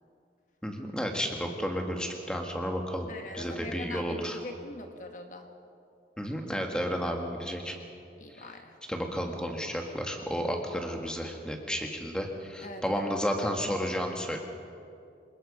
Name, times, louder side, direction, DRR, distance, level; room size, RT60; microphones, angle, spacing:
voice 1, 0.6-4.4 6.2-7.8 8.9-14.4, equal, 5° left, 2 dB, 2.0 m, -32 dB
voice 2, 3.1-5.5 8.2-8.8 12.6-13.1, left 2 dB, 45° left, 5 dB, 1.3 m, -42 dB
26.5 x 20.0 x 5.5 m, 2.5 s
head